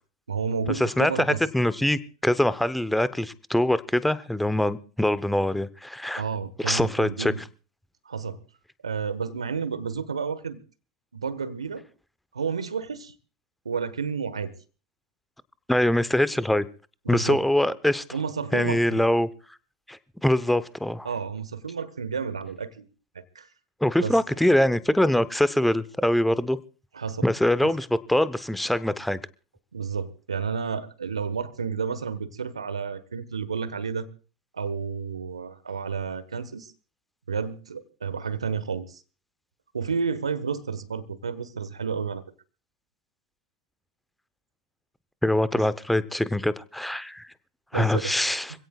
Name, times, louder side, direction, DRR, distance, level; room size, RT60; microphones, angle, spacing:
voice 1, 0.3-1.4 6.2-7.4 8.0-8.4 8.8-10.6 11.1-11.8 12.3-13.1 13.6-14.5 17.0-17.4 18.1-19.0 21.0-22.9 23.3-23.5 24.0-24.2 26.9-27.3 29.7-34.1 34.5-36.7 37.3-39.0 39.7-42.2 47.7-48.1, right 6 dB, 85° right, 14 dB, 1.3 m, -31 dB
voice 2, 0.8-1.1 1.5-6.2 6.6-7.3 15.7-16.7 17.1-18.0 18.5-19.3 19.9-21.1 23.8-26.6 27.2-29.2 45.2-47.3 47.7-48.5, left 1 dB, 5° left, 15 dB, 0.8 m, -23 dB
26.0 x 17.0 x 2.4 m, 0.37 s
hypercardioid pair, 90°, 3 cm